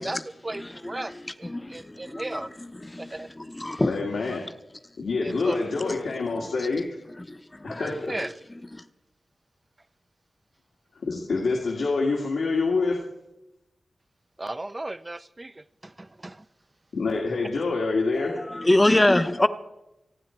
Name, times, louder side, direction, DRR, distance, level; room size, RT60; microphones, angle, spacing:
voice 1, 0.0-2.5 3.0-3.3 3.5-3.6 5.2-5.6 7.8-8.3 14.4-16.5, right 2 dB, 25° right, 0.5 m, -36 dB
voice 2, 1.0-3.9 4.3-4.4 5.3-5.4 5.9-6.0 6.4-6.7 7.3-7.9 8.7-8.8 18.2-19.5, left 1 dB, 20° left, 0.8 m, -26 dB
voice 3, 3.8-4.4 5.0-6.8 7.6-8.1 10.9-13.0 16.9-18.3, left 3 dB, 90° left, 2.1 m, -26 dB
29.0 x 9.7 x 4.5 m
wide cardioid pair, 100°, 0 cm